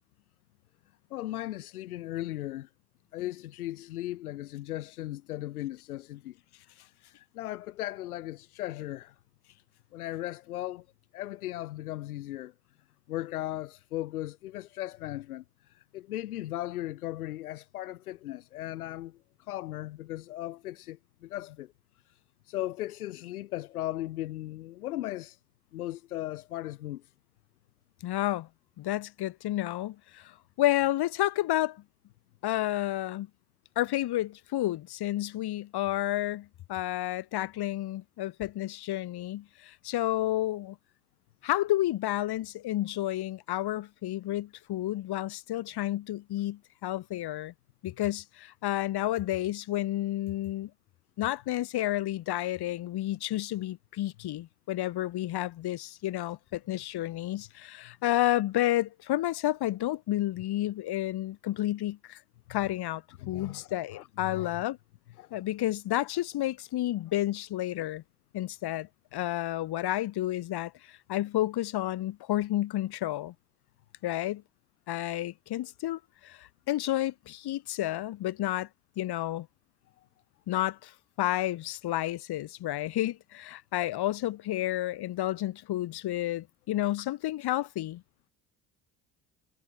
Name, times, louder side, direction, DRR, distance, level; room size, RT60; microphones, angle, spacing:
voice 1, 1.1-2.7 3.1-6.4 7.1-9.1 9.9-10.8 11.1-12.5 13.1-21.7 22.1-22.2 22.4-25.4 25.7-27.0 63.2-64.5 65.2-65.3, left 15 dB, 90° left, 1.3 m, -37 dB
voice 2, 28.0-28.5 28.8-31.8 32.4-33.3 33.8-40.8 41.4-47.5 47.8-50.7 51.2-62.2 62.5-64.8 65.3-68.0 68.3-73.3 74.0-74.4 74.9-78.7 79.0-79.5 80.5-88.0, left 14 dB, 60° left, 2.9 m, -31 dB
hypercardioid pair, 55°, 43 cm